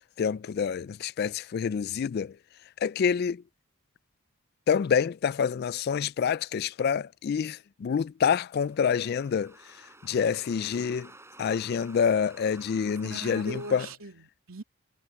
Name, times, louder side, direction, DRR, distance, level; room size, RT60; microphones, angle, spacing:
voice 1, 0.2-2.4 2.8-3.4 4.7-9.8 10.0-11.1 11.4-13.9, left 7 dB, 50° left, 0.3 m, -27 dB
sound 1, 8.3-14.0, right 2 dB, 15° right, 7.7 m, -53 dB
voice 2, 13.1-14.6, right 2 dB, 85° right, 3.1 m, -40 dB
head